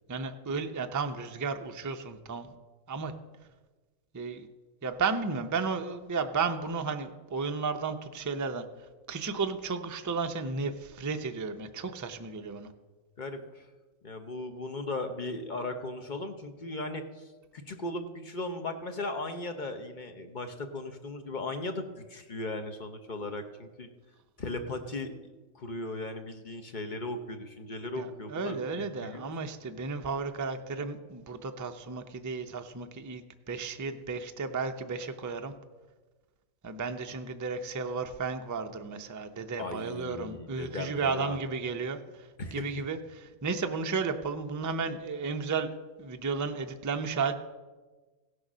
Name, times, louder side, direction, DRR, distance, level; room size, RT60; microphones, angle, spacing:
voice 1, 0.1-2.5 2.9-3.1 4.1-4.5 4.8-8.6 9.1-12.7 28.0-35.5 36.6-47.3, right 4 dB, 30° right, 6 dB, 0.3 m, -33 dB
voice 2, 13.2-13.7 14.0-23.9 24.4-25.1 25.5-29.2 39.6-41.4 42.4-42.6, left 2 dB, 40° left, 6 dB, 0.9 m, -37 dB
16.0 x 6.6 x 6.1 m, 1.3 s
omnidirectional pair, 1.4 m